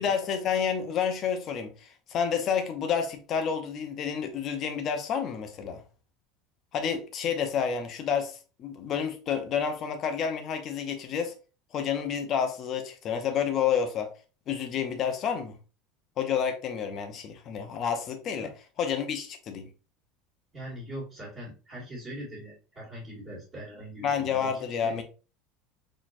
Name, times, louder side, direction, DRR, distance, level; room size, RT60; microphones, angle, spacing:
voice 1, 0.0-5.8 6.7-11.3 11.7-14.1 14.5-15.6 16.2-19.7 24.0-25.0, left 7 dB, 30° left, 0.6 m, -29 dB
voice 2, 20.5-24.5 24.8-24.9, equal, 20° right, 1.8 m, -41 dB
4.1 x 3.0 x 2.5 m
cardioid pair, 180°, 0 cm